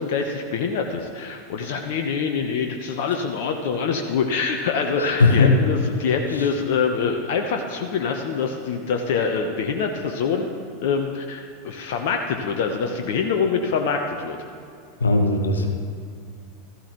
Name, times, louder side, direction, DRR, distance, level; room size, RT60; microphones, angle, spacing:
voice 1, 0.0-14.4, left 5 dB, 60° left, 4 dB, 0.9 m, -25 dB
voice 2, 5.0-5.6 15.0-15.7, left 3 dB, 80° left, 5 dB, 1.1 m, -18 dB
15.0 x 14.0 x 3.0 m, 2.4 s
figure-of-eight pair, 85°, 0 cm